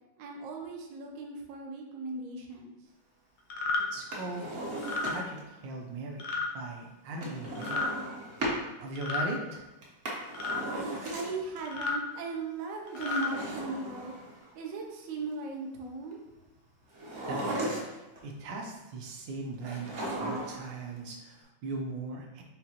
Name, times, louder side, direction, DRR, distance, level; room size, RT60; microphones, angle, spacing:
voice 1, 0.2-2.7 11.1-14.1 14.5-16.2, right 3 dB, 90° right, 1 dB, 0.7 m, -38 dB
sound 1, 3.5-3.8 4.8-5.1 6.2-6.5 7.5-7.9 9.0-9.3 10.3-10.6 11.7-12.0 12.9-13.3, left 3 dB, 75° left, 0.9 m, -31 dB
voice 2, 3.9-4.5 5.0-6.2 6.5-7.9 8.8-9.6 17.3-22.4, right 2 dB, 70° right, 1 dB, 1.3 m, -39 dB
Drawer open or close, 4.0-5.5 7.2-8.6 9.8-11.6 12.8-14.5 16.9-18.2 19.6-20.7 21.0-21.1, right 1 dB, 55° right, 0.8 m, -36 dB
5.7 x 2.5 x 2.8 m, 1.0 s
omnidirectional pair, 2.2 m